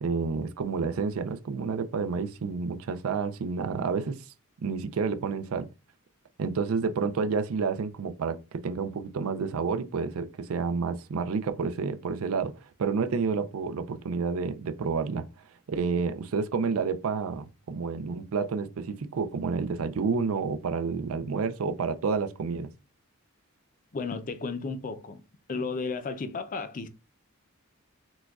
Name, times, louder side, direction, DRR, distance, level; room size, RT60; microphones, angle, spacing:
voice 1, 0.0-4.2 4.6-5.7 6.4-12.5 12.8-15.3 15.7-22.7, right 5 dB, 85° right, 0.4 m, -29 dB
voice 2, 23.9-25.2 25.5-26.9, left 4 dB, 40° left, 0.4 m, -33 dB
6.1 x 2.2 x 2.3 m
head